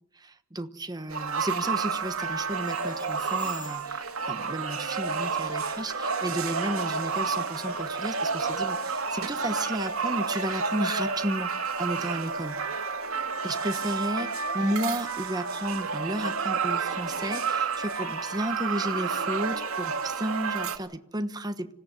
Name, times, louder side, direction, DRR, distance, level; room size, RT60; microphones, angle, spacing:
voice 1, 0.1-11.5 11.8-12.6 13.4-21.7, right 1 dB, 20° right, 9 dB, 1.2 m, -33 dB
sound 1, 1.1-20.8, right 5 dB, 80° right, 2.1 m, -30 dB
sound 2, 2.4-8.9, equal, 10° left, 3.6 m, -52 dB
26.0 x 17.0 x 7.3 m, 0.76 s
head